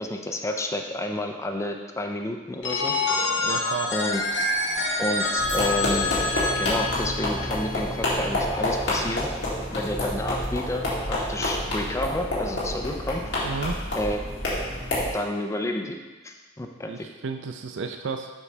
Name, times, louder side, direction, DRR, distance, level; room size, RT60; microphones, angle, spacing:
voice 1, 0.0-3.2 3.9-4.2 5.0-6.1 6.6-9.3 9.7-13.2 13.9-14.2 15.1-16.0 16.2-17.1, left 1 dB, 15° left, 3 dB, 0.4 m, -30 dB
Telephone, 2.6-8.4, left 2 dB, 85° left, 0.8 m, -27 dB
voice 2, 3.3-3.9 13.4-13.8 16.9-18.3, right 5 dB, 70° right, 6 dB, 0.4 m, -32 dB
sound 1, 5.4-15.1, left 1 dB, 70° left, 2.1 m, -28 dB
7.3 x 5.2 x 3.3 m, 1.2 s
head